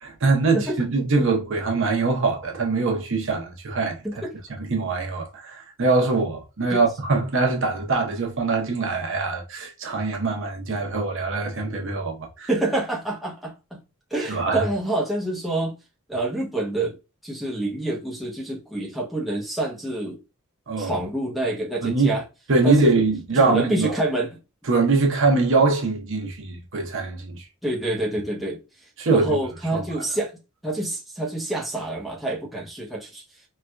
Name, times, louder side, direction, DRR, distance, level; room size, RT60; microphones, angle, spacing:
voice 1, 0.0-4.0 4.6-12.5 14.3-14.6 20.7-20.9 21.8-22.1 22.5-24.0 24.7-27.5 29.0-29.4 29.7-30.0, right 3 dB, 55° right, 0.8 m, -23 dB
voice 2, 0.5-1.2 4.0-4.2 6.7-6.8 12.5-13.5 14.1-15.7 16.1-17.0 17.2-20.2 20.8-22.2 22.6-22.9 23.4-24.3 27.6-28.6 29.1-30.3 30.6-33.2, right 2 dB, ahead, 0.7 m, -27 dB
4.3 x 2.3 x 2.2 m
head